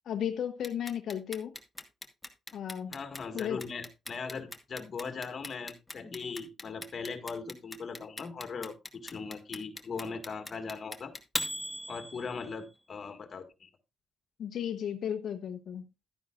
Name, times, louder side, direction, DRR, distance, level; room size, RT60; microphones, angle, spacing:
voice 1, 0.1-1.5 2.5-2.9 3.3-3.6 14.4-15.8, left 9 dB, 65° left, 0.8 m, -34 dB
Clock, 0.6-12.6, left 1 dB, 10° left, 1.2 m, -39 dB
voice 2, 2.9-11.1 11.9-13.7, left 5 dB, 45° left, 1.8 m, -39 dB
11.5 x 9.4 x 2.4 m
cardioid pair, 90°, 0 cm